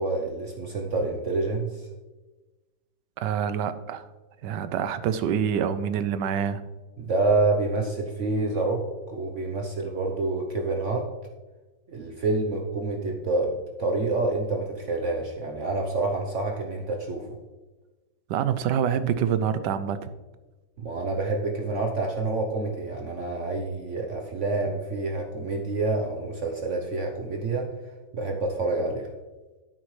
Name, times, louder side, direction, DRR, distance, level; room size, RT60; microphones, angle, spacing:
voice 1, 0.0-1.9 7.0-11.1 11.9-17.3 20.8-27.7 28.1-29.1, right 3 dB, 55° right, 2 dB, 1.0 m, -27 dB
voice 2, 3.2-4.1 4.4-6.6 18.3-20.1, right 8 dB, 85° right, 12 dB, 1.3 m, -26 dB
10.0 x 8.5 x 3.2 m, 1.2 s
omnidirectional pair, 1.8 m